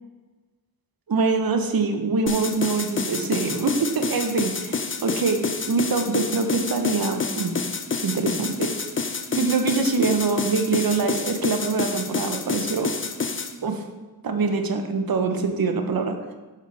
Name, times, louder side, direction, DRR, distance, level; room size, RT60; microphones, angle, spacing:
voice 1, 1.1-7.6 8.0-8.7 9.3-12.9 13.6-13.8 14.2-16.1, right 4 dB, 60° right, 5 dB, 0.9 m, -24 dB
sound 1, 2.3-13.5, left 5 dB, 30° left, 0.6 m, -28 dB
5.6 x 4.5 x 4.7 m, 1.2 s
cardioid pair, 50°, 40 cm